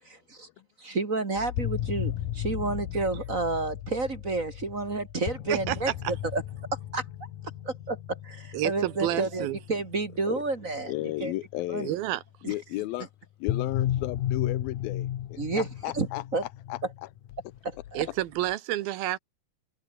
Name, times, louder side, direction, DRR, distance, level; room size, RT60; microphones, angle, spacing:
voice 1, 0.8-6.4 6.9-7.0 7.6-11.3 11.7-11.9 12.4-12.5 15.4-15.7 15.9-16.1 16.3-16.4 17.6-18.0, right 3 dB, 30° right, 1.7 m, -30 dB
sound 1, 1.4-11.5 13.5-18.5, left 12 dB, 70° left, 2.9 m, -35 dB
voice 2, 8.5-9.6 11.8-12.2 17.9-19.2, right 14 dB, 85° right, 2.9 m, -29 dB
voice 3, 10.9-12.0 12.4-13.1 13.4-16.2 16.7-16.8, left 17 dB, 85° left, 2.7 m, -34 dB
omnidirectional pair, 4.2 m